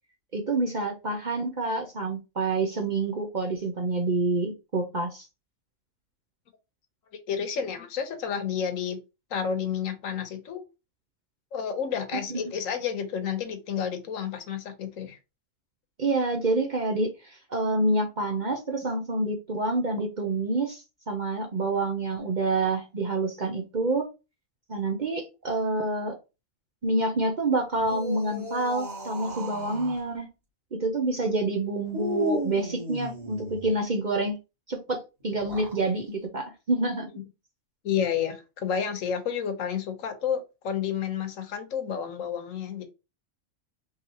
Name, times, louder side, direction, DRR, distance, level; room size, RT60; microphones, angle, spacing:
voice 1, 0.3-5.3 12.3-12.5 16.0-24.1 24.7-26.2 26.8-30.3 30.8-34.4 34.7-37.1, right 2 dB, 45° right, 0.7 m, -27 dB
voice 2, 7.3-9.0 9.3-10.6 11.5-15.2 37.8-42.8, left 7 dB, 75° left, 1.2 m, -30 dB
sound 1, 27.7-30.0 31.9-33.7 35.3-35.8, equal, 30° right, 2.3 m, -34 dB
4.7 x 3.2 x 2.8 m
omnidirectional pair, 1.4 m